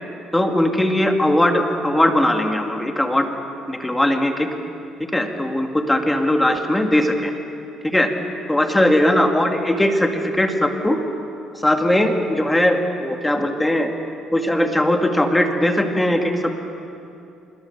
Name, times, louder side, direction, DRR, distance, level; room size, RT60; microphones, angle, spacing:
voice 1, 0.3-3.3 3.7-4.5 5.1-7.3 7.8-8.1 8.5-11.0 11.6-13.9 14.3-16.3, left 1 dB, 10° left, 4 dB, 2.1 m, -19 dB
26.0 x 21.5 x 7.0 m, 2.7 s
cardioid pair, 100°, 0 cm